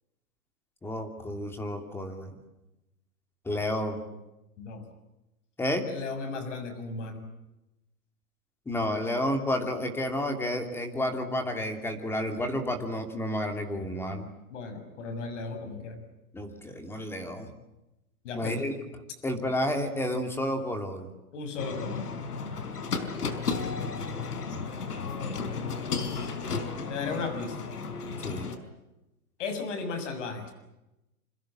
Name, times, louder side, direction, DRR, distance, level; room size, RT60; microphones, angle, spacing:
voice 1, 0.8-2.3 3.4-4.0 5.6-5.9 8.7-14.3 16.3-17.5 18.3-18.7 19.2-21.1 28.2-28.5, left 1 dB, 5° left, 6 dB, 2.7 m, -31 dB
voice 2, 5.9-7.2 14.5-16.0 18.2-18.7 21.3-22.0 26.9-27.5 29.4-30.5, left 4 dB, 50° left, 8 dB, 6.9 m, -35 dB
sound 1, 21.6-28.6, left 5 dB, 90° left, 4.6 m, -33 dB
28.0 x 26.0 x 7.6 m, 0.94 s
hypercardioid pair, 160°, 45 cm